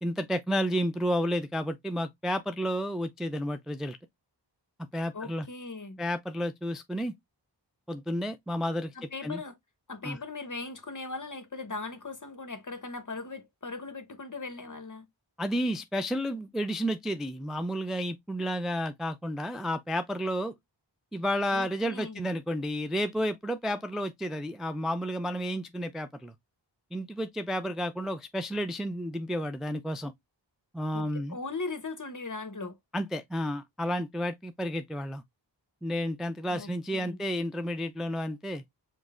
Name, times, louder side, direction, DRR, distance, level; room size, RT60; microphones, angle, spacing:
voice 1, 0.0-4.0 4.9-5.5 6.0-7.1 7.9-9.4 10.0-10.2 15.4-20.5 21.1-26.3 26.9-30.1 30.7-31.4 32.9-35.2 35.8-38.6, equal, ahead, 0.4 m, -31 dB
voice 2, 5.1-6.0 8.9-9.6 9.9-15.1 21.5-22.3 30.9-32.8 36.5-37.2, left 3 dB, 45° left, 0.9 m, -39 dB
5.2 x 2.1 x 3.6 m
wide cardioid pair, 50°, 44 cm